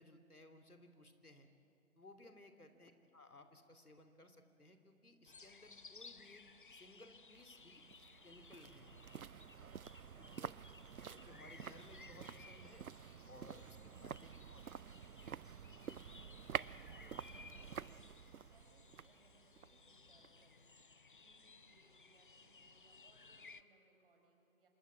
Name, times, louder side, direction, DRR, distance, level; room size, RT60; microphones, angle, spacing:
voice 1, 0.0-1.5 2.0-6.4 6.7-7.8 8.2-9.0 10.2-10.7 11.0-12.9 13.3-14.6, left 1 dB, 90° left, 8 dB, 3.1 m, -60 dB
voice 2, 2.6-2.9 16.1-24.7, right 3 dB, 40° right, 2 dB, 5.4 m, -72 dB
sound 1, 5.3-23.6, left 4 dB, 35° left, 0.7 m, -60 dB
Stream, 7.3-12.6, equal, 15° left, 7.5 m, -81 dB
sound 2, 7.3-20.5 20.8-20.9, right 7 dB, 75° right, 0.7 m, -49 dB
26.5 x 21.0 x 8.8 m, 2.6 s
figure-of-eight pair, 155°, 43 cm